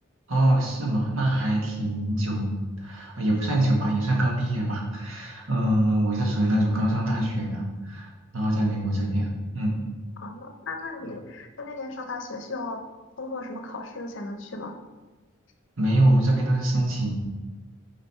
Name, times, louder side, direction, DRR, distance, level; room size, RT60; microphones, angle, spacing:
voice 1, 0.3-9.8 15.8-17.1, right 1 dB, 80° right, -2 dB, 1.7 m, -24 dB
voice 2, 10.2-12.8 13.2-14.7, left 3 dB, 60° left, 5 dB, 0.7 m, -36 dB
7.8 x 4.0 x 4.3 m, 1.2 s
head